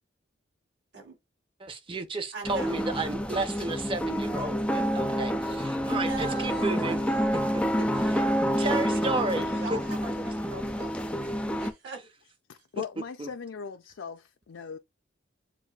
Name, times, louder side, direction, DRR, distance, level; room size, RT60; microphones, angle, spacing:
voice 1, 1.6-7.0 7.5-8.2 8.6-9.8 13.2-13.3, right 2 dB, 30° right, 0.7 m, -32 dB
voice 2, 2.3-2.8 5.8-7.0 8.9-11.3 11.6-12.0, right 5 dB, 65° right, 3.2 m, -40 dB
sound 1, 2.4-11.7, equal, 5° left, 0.4 m, -28 dB
voice 3, 12.5-14.8, left 5 dB, 75° left, 0.4 m, -39 dB
7.3 x 2.6 x 2.3 m
head